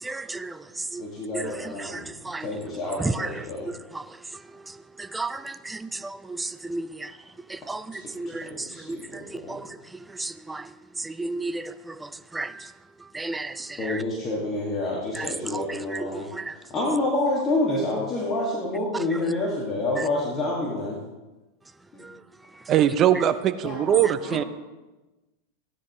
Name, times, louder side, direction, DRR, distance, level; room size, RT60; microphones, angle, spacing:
voice 1, 0.0-1.0 1.3-2.5 3.0-3.5 3.9-4.0 4.7-7.1 7.5-9.8 10.1-10.7 11.0-12.7 13.1-14.0 15.2-16.6 22.0-22.2, right 2 dB, 10° right, 0.5 m, -34 dB
voice 2, 1.0-2.1 2.4-3.7 8.5-9.6 13.8-16.3 16.7-21.0 21.9-22.1 23.5-24.4, left 2 dB, 30° left, 2.3 m, -28 dB
voice 3, 22.7-24.4, right 10 dB, 35° right, 0.8 m, -21 dB
16.0 x 9.8 x 3.2 m
supercardioid pair, 125°, 0 cm